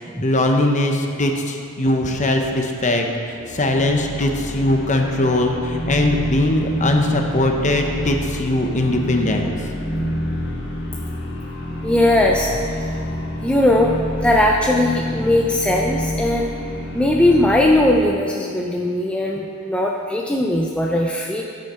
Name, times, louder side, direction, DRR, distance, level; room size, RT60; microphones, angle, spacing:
voice 1, 0.2-9.6, left 1 dB, 35° left, 3 dB, 0.9 m, -20 dB
sound 1, 3.3-18.0, equal, 50° left, 2.6 m, -28 dB
voice 2, 11.8-12.5 13.4-16.5 16.9-21.4, left 1 dB, 5° left, -1 dB, 0.4 m, -19 dB
15.5 x 6.5 x 4.4 m, 2.4 s
head